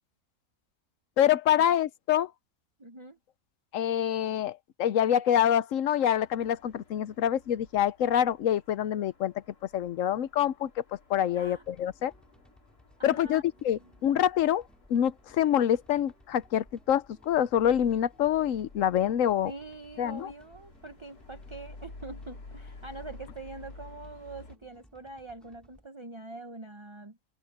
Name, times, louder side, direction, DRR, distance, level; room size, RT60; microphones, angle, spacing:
voice 1, 1.2-2.3 3.7-9.3 9.7-10.7 11.1-12.1 13.0-14.6 14.9-19.5 20.0-20.3, left 10 dB, 65° left, 1.0 m, -26 dB
voice 2, 2.8-3.2 11.3-11.6 13.0-13.9 19.4-27.2, right 3 dB, 25° right, 0.8 m, -44 dB
sound 1, 6.0-24.6, left 3 dB, 85° left, 3.7 m, -52 dB
sound 2, 11.3-25.9, equal, ahead, 5.5 m, -61 dB
open air
omnidirectional pair, 1.6 m